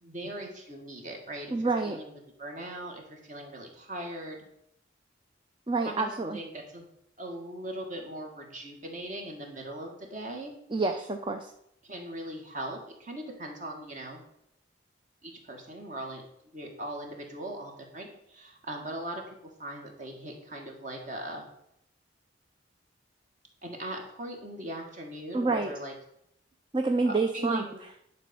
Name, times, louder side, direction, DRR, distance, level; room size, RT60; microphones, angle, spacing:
voice 1, 0.0-2.1 2.4-4.4 5.8-6.9 7.2-10.5 11.8-14.2 15.2-16.2 16.5-19.2 19.6-21.5 23.6-25.9 27.0-27.8, right 1 dB, 45° right, 2 dB, 1.9 m, -40 dB
voice 2, 1.5-2.0 5.7-6.4 10.7-11.5 25.3-25.7 26.7-27.6, right 3 dB, 25° right, 5 dB, 0.6 m, -27 dB
10.5 x 4.2 x 7.1 m, 0.76 s
head